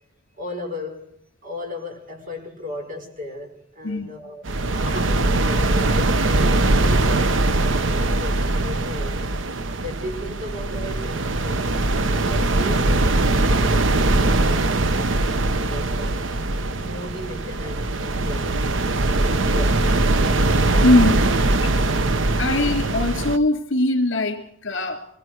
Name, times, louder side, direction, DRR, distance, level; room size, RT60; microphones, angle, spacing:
voice 1, 0.4-1.1 1.4-4.4 4.9-9.2 9.8-16.2 16.8-18.6 19.1-20.1, left 2 dB, 45° right, 3 dB, 5.6 m, -36 dB
sound 1, 4.4-23.4, right 2 dB, 70° right, 0.9 m, -21 dB
voice 2, 4.7-5.1 20.8-21.3 21.6-21.7 22.1-25.1, left 2 dB, 65° left, 6 dB, 3.2 m, -21 dB
25.5 x 21.5 x 4.8 m, 0.70 s
head